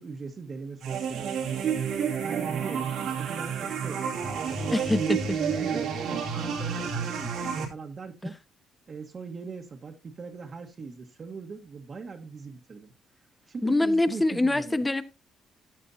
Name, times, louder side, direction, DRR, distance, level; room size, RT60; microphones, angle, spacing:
voice 1, 0.0-1.8 2.2-8.4 8.9-12.9 13.5-14.8, right 4 dB, 45° right, 1.5 m, -40 dB
sound 1, 0.8-7.6, right 6 dB, 85° right, 2.5 m, -30 dB
voice 2, 4.7-5.2 8.2-8.3 13.6-15.0, left 2 dB, 15° left, 1.2 m, -24 dB
13.5 x 9.1 x 2.8 m
cardioid pair, 90°, 0 cm